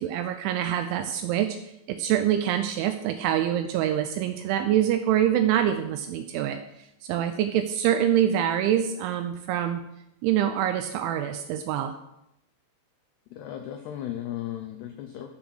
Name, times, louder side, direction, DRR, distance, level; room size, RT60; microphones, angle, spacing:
voice 1, 0.0-1.6 1.9-6.6 7.0-9.8 10.2-11.9, right 10 dB, 80° right, 8 dB, 2.8 m, -25 dB
voice 2, 13.3-15.3, left 11 dB, 90° left, 6 dB, 2.3 m, -35 dB
13.0 x 5.8 x 6.2 m, 0.81 s
omnidirectional pair, 5.8 m